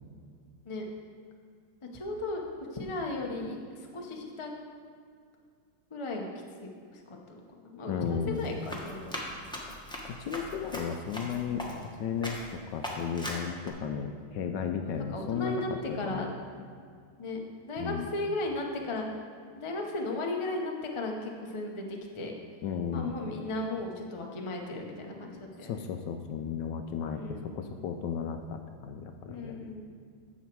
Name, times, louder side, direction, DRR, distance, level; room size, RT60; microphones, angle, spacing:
voice 1, 1.9-2.4 2.7-4.5 5.9-6.3 6.6-9.1 15.1-16.3 17.2-19.1 19.5-22.3 22.9-25.8 27.1-27.6 29.3-29.9, left 2 dB, 50° left, 1 dB, 0.3 m, -36 dB
voice 2, 7.8-8.5 10.2-16.3 17.8-18.1 22.6-23.2 25.6-29.6, left 7 dB, 75° left, 6 dB, 1.1 m, -34 dB
Run, 8.3-11.9 12.2-12.5 12.8-13.7, left 1 dB, 5° left, 0.7 m, -39 dB
10.0 x 7.2 x 4.6 m, 2.2 s
omnidirectional pair, 2.2 m